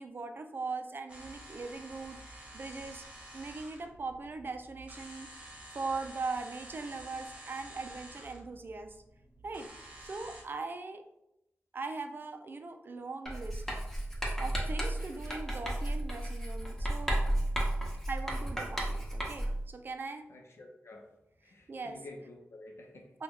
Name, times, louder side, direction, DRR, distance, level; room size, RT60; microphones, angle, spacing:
voice 1, 0.0-3.1 3.3-5.3 5.7-9.0 9.4-9.7 10.0-11.0 11.7-13.7 14.4-17.2 18.1-20.2 21.7-22.0 23.1-23.2, right 3 dB, 50° right, 6 dB, 0.3 m, -40 dB
sound 1, 1.1-10.4, right 1 dB, 25° right, 1.0 m, -50 dB
Writing, 13.3-19.7, right 1 dB, 10° left, 0.8 m, -33 dB
voice 2, 20.3-21.1 21.4-23.2, left 2 dB, 70° left, 1 dB, 0.7 m, -50 dB
3.0 x 2.3 x 3.5 m, 0.82 s
wide cardioid pair, 85°, 5 cm